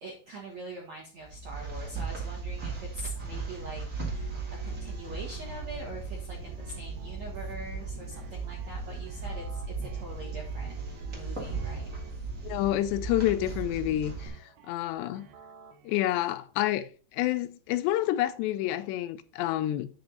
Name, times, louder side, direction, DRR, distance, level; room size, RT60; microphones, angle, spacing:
voice 1, 0.0-10.7 11.1-11.9, right 2 dB, 55° right, 2.1 m, -43 dB
sound 1, 1.2-14.3, right 4 dB, 30° right, 1.4 m, -37 dB
sound 2, 3.9-16.1, right 4 dB, 85° right, 3.3 m, -53 dB
voice 2, 12.4-14.3 14.7-15.3 15.8-19.9, left 14 dB, 80° left, 2.7 m, -28 dB
9.2 x 5.5 x 4.0 m
omnidirectional pair, 5.1 m